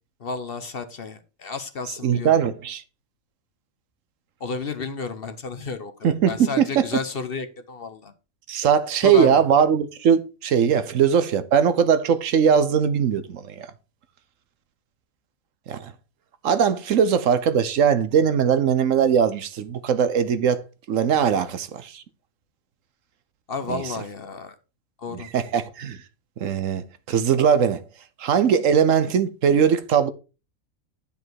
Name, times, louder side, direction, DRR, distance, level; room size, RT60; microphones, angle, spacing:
voice 1, 0.2-2.3 4.4-8.1 9.0-9.4 23.5-24.5 25.0-25.3, left 4 dB, 45° left, 1.0 m, -32 dB
voice 2, 2.0-2.8 6.0-6.8 8.5-13.7 15.7-15.9 16.4-20.6 20.9-22.0 23.7-23.8 25.1-26.0 26.4-27.8 28.2-30.1, right 7 dB, 70° right, 1.1 m, -20 dB
9.9 x 5.2 x 4.6 m
omnidirectional pair, 1.5 m